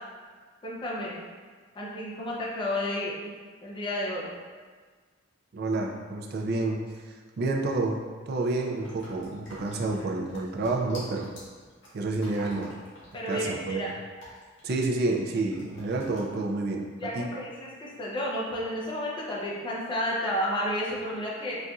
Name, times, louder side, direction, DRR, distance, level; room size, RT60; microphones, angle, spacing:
voice 1, 0.6-1.2 1.8-3.3 3.6-4.3 13.1-13.9 17.0-21.6, left 1 dB, 25° left, -5 dB, 0.6 m, -31 dB
voice 2, 5.5-6.8 7.4-8.0 8.3-11.3 11.9-12.7 13.3-13.9 14.6-16.9 17.1-17.3, right 2 dB, 55° right, 1 dB, 0.4 m, -29 dB
sound 1, 8.8-15.2 15.5-16.2, equal, 65° left, 1.1 m, -48 dB
4.0 x 2.5 x 2.3 m, 1.5 s
head